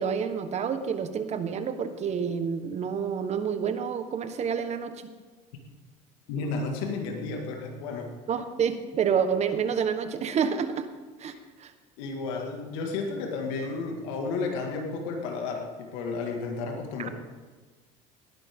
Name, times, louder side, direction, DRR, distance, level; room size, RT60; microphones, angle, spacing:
voice 1, 0.0-5.0 8.3-10.9 11.2-11.7 17.0-17.1, right 7 dB, 40° right, 9 dB, 1.4 m, -28 dB
voice 2, 6.3-8.1 11.3-11.4 12.0-17.1, left 4 dB, 75° left, 2 dB, 2.1 m, -32 dB
18.5 x 10.5 x 3.8 m, 1.4 s
supercardioid pair, 90°, 17 cm